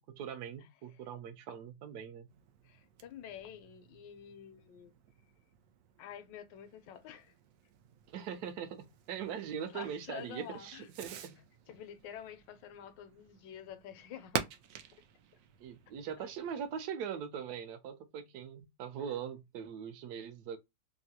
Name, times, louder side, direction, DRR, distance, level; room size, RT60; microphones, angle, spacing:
voice 1, 0.1-2.3 8.1-11.4 15.6-20.6, right 8 dB, 70° right, 1.1 m, -41 dB
Fireworks, 2.3-16.9, right 8 dB, 90° right, 0.7 m, -48 dB
voice 2, 2.6-4.9 6.0-7.3 9.7-10.9 11.7-14.5, left 9 dB, 80° left, 1.3 m, -48 dB
3.6 x 2.1 x 2.7 m
omnidirectional pair, 2.0 m